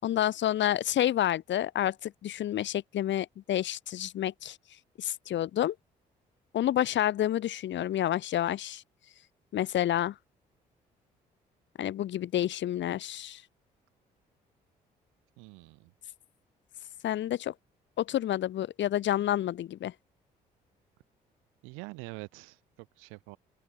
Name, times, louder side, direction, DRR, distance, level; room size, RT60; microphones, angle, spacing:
voice 1, 0.0-4.6 5.0-5.7 6.5-8.8 9.5-10.1 11.8-13.4 17.0-17.5 18.0-19.9, left 12 dB, 60° left, 4.8 m, -29 dB
voice 2, 15.4-15.9 21.6-23.4, right 28 dB, 75° right, 7.7 m, -45 dB
open air
hypercardioid pair, 45°, 21 cm